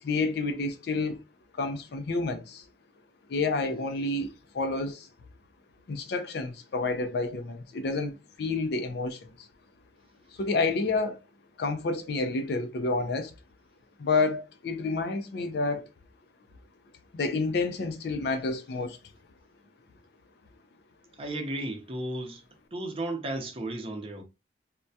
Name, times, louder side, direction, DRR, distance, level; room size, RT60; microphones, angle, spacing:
voice 1, 0.0-1.2 1.6-2.6 3.3-5.1 5.9-9.5 10.4-11.2 11.6-13.3 14.0-15.9 17.1-19.0, left 3 dB, 60° left, 0.4 m, -29 dB
voice 2, 21.2-22.4 22.7-24.2, right 1 dB, 30° right, 0.6 m, -34 dB
2.2 x 2.1 x 2.6 m
head